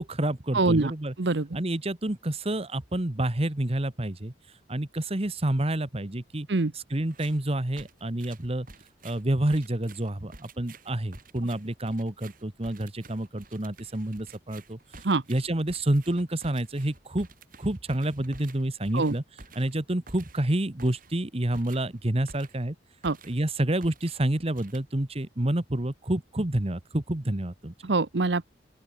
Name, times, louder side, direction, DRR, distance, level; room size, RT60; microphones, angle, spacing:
voice 1, 0.0-1.1 1.5-4.3 4.7-6.5 6.7-8.7 9.0-14.8 15.3-17.3 17.6-19.2 19.5-22.7 23.2-27.7, right 1 dB, 35° right, 1.4 m, -28 dB
voice 2, 0.5-0.9 1.2-1.5 6.5-6.7 15.0-15.2 18.9-19.1 23.0-23.2 27.8-28.4, right 3 dB, 70° right, 0.9 m, -24 dB
sound 1, 7.1-7.4 7.8-22.7 23.0-23.5 23.8-25.2, right 3 dB, 50° right, 7.9 m, -51 dB
open air
head